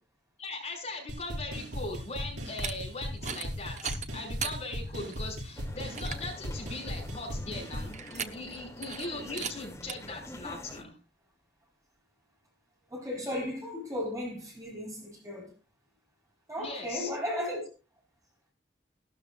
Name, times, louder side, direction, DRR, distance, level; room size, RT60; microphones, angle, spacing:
voice 1, 0.4-11.0 16.6-17.1, left 2 dB, 35° left, 5.6 m, -40 dB
sound 1, 1.1-7.9, equal, 80° right, 5.5 m, -38 dB
sound 2, 2.4-2.7 3.2-3.5 3.8-4.6 5.1-5.2 5.6-5.7 5.9-6.3 7.9-8.6 8.8-9.1 9.4-9.5 9.9-10.0, right 7 dB, 40° right, 0.9 m, -36 dB
sound 3, 5.5-10.8, left 1 dB, 15° left, 2.5 m, -47 dB
voice 2, 12.9-15.5 16.5-17.6, left 1 dB, 20° right, 4.1 m, -35 dB
17.5 x 12.5 x 2.4 m
head